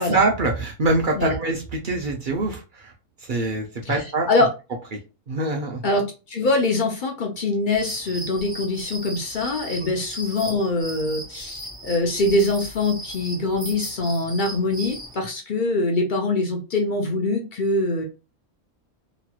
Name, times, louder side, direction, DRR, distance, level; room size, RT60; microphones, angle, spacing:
voice 1, 0.0-2.9 3.2-4.3 5.3-5.8 9.8-9.9, right 2 dB, 65° right, 2 dB, 0.5 m, -24 dB
voice 2, 3.9-4.5 5.8-18.0, left 2 dB, 60° left, 2 dB, 0.5 m, -23 dB
sound 1, 7.7-15.1, right 1 dB, 5° right, 0.4 m, -37 dB
3.0 x 2.9 x 2.3 m, 0.30 s
omnidirectional pair, 1.6 m